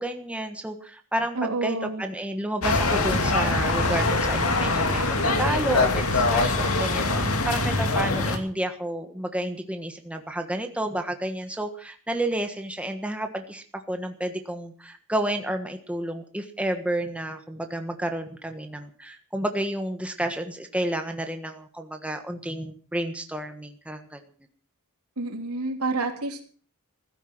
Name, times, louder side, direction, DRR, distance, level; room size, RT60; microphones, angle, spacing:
voice 1, 0.0-24.2, right 1 dB, 5° right, 5 dB, 1.4 m, -31 dB
voice 2, 1.3-2.0 25.2-26.4, right 3 dB, 85° right, 4 dB, 3.3 m, -28 dB
sound 1, 2.6-8.4, left 2 dB, 70° left, 2.6 m, -23 dB
16.0 x 13.0 x 6.1 m, 0.43 s
head